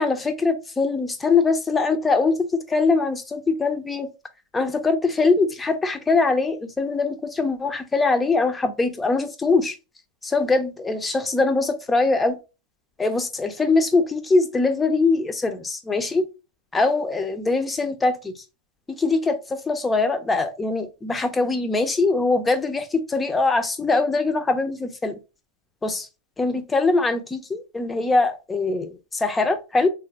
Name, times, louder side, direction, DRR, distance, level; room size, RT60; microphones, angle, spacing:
voice 1, 0.0-4.1 4.5-9.8 10.2-12.4 13.0-16.2 16.7-18.3 18.9-25.2 25.8-26.1 26.4-29.9, left 3 dB, 15° left, 0.5 m, -22 dB
3.7 x 2.5 x 2.8 m
figure-of-eight pair, 90°, 0 cm